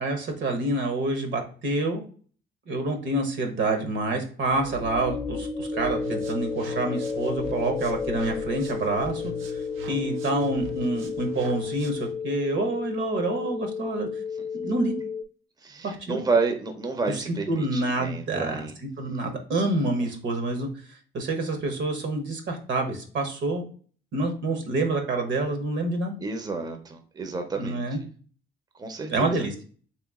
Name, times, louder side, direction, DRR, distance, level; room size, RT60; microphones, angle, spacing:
voice 1, 0.0-2.0 2.7-9.2 9.9-14.1 14.5-15.0 15.8-16.2 17.5-18.7 19.0-20.7 21.1-23.7 24.1-26.1 27.6-28.0 29.1-29.5, right 2 dB, 65° right, 5 dB, 1.0 m, -27 dB
sound 1, 4.5-11.8, left 3 dB, 15° left, 0.7 m, -35 dB
sound 2, 5.7-15.2, left 6 dB, 60° left, 0.4 m, -33 dB
sound 3, 5.8-12.1, equal, 90° right, 0.6 m, -42 dB
voice 2, 15.6-18.7 26.2-27.8 28.8-29.5, right 4 dB, 20° right, 5 dB, 0.6 m, -30 dB
3.4 x 3.0 x 3.5 m, 0.43 s
cardioid pair, 90°, 20 cm